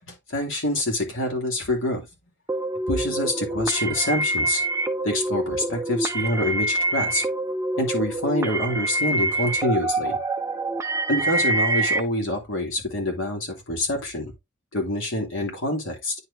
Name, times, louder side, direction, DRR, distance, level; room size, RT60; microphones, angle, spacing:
voice 1, 0.3-2.0 2.9-4.6 5.0-7.2 7.8-10.2 11.1-14.3 14.7-16.1, left 1 dB, 90° left, 2.5 m, -26 dB
sound 1, 2.5-12.0, right 2 dB, 15° right, 0.5 m, -26 dB
9.5 x 4.5 x 2.6 m
head